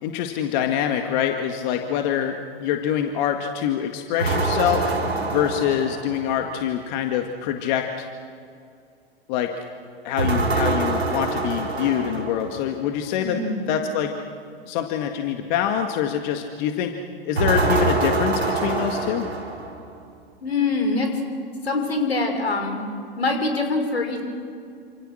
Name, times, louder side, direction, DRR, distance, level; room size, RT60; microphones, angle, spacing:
voice 1, 0.0-4.9 5.3-8.1 9.3-9.5 10.0-13.4 13.7-14.1 14.7-16.9 17.2-19.3, left 9 dB, 50° left, 5 dB, 2.0 m, -25 dB
sound 1, 4.2-6.5 10.2-12.7 17.4-20.0, right 3 dB, 85° right, 4.3 m, -25 dB
voice 2, 13.2-13.6 20.4-21.1 21.6-22.8 23.2-24.2, left 3 dB, 85° left, 4 dB, 5.7 m, -24 dB
28.5 x 27.5 x 6.5 m, 2.4 s
figure-of-eight pair, 100°, 30 cm